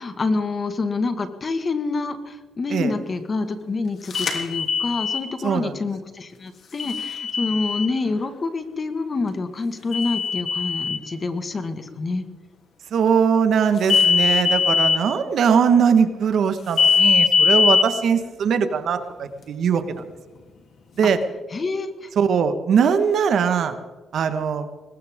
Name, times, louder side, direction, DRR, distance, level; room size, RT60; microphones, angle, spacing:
voice 1, 0.0-12.2 21.5-22.1, left 3 dB, 35° left, 9 dB, 1.7 m, -27 dB
sound 1, 4.1-5.2 6.8-7.9 9.9-11.0 13.8-15.0 16.8-17.8, left 5 dB, 55° left, 3.1 m, -20 dB
voice 2, 5.4-5.8 12.9-20.0 21.0-21.2 22.1-23.8 24.1-24.6, right 7 dB, 65° right, 9 dB, 1.4 m, -20 dB
20.5 x 19.0 x 3.7 m, 1.3 s
cardioid pair, 90°, 0 cm